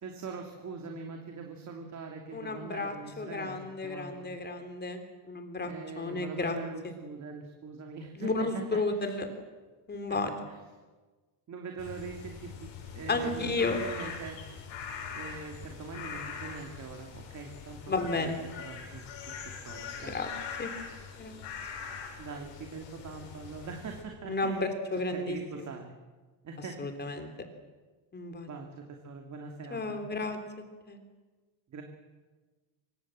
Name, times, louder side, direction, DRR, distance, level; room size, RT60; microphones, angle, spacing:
voice 1, 0.0-3.6 3.8-4.2 5.6-8.8 10.1-10.2 10.5-10.6 11.5-14.4 15.1-17.8 18.2-20.2 22.2-24.7 25.1-25.9 26.4-27.2 28.2-28.7 29.0-30.0 31.7-31.8, right 4 dB, 35° right, 2 dB, 2.8 m, -43 dB
voice 2, 2.3-5.0 5.3-6.6 6.8-6.9 8.2-9.3 9.9-10.3 13.1-13.8 17.9-18.4 20.0-20.3 20.6-20.7 21.2-21.4 24.2-25.7 26.8-27.3 28.1-28.5 29.7-30.4 30.9-31.0, left 3 dB, 20° left, 6 dB, 3.4 m, -32 dB
sound 1, 11.8-24.0, left 6 dB, 75° left, 7.5 m, -42 dB
25.0 x 24.5 x 7.6 m, 1.3 s
cardioid pair, 150°, 47 cm